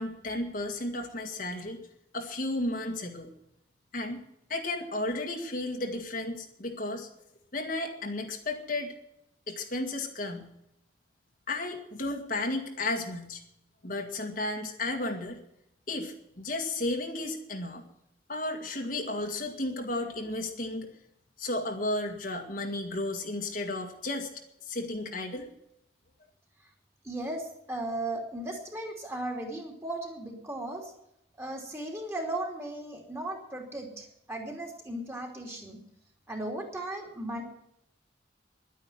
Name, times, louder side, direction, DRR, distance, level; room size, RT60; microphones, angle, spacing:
voice 1, 0.0-1.8 2.1-3.3 3.9-4.2 4.5-7.1 7.5-8.9 9.5-10.5 11.5-13.4 13.8-15.4 15.9-17.8 18.3-20.9 21.4-24.3 24.6-25.5, left 2 dB, 50° left, 2 dB, 1.9 m, -33 dB
voice 2, 27.0-30.9 31.4-35.8 36.3-37.4, right 1 dB, 15° right, 0 dB, 2.9 m, -36 dB
11.5 x 9.8 x 9.1 m, 0.78 s
head